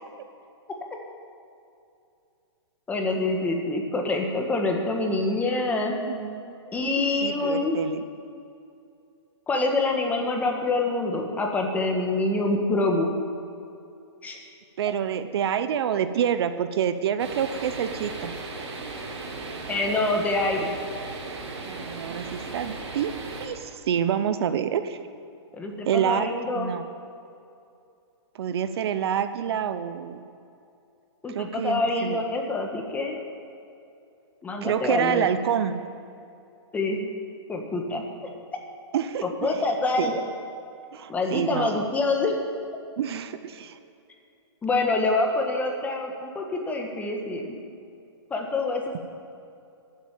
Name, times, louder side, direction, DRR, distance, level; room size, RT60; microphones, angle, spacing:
voice 1, 2.9-5.9 6.7-7.8 9.5-13.1 14.2-14.4 19.7-20.7 25.5-26.7 31.2-33.2 34.4-35.3 36.7-37.0 37.5-38.0 39.2-40.2 41.1-42.3 44.6-47.6 48.3-49.0, left 2 dB, 10° left, 2 dB, 1.4 m, -26 dB
voice 2, 6.1-8.0 14.8-18.3 21.6-23.1 23.4-25.0 25.9-26.8 28.4-30.2 31.3-32.2 34.6-35.8 38.9-39.5 40.0-40.1 40.9-41.8 43.0-43.8, right 8 dB, 60° right, 11 dB, 0.8 m, -27 dB
sound 1, 17.2-23.5, right 3 dB, 80° right, 3.7 m, -36 dB
12.5 x 8.2 x 8.9 m, 2.6 s
hypercardioid pair, 155°, 15 cm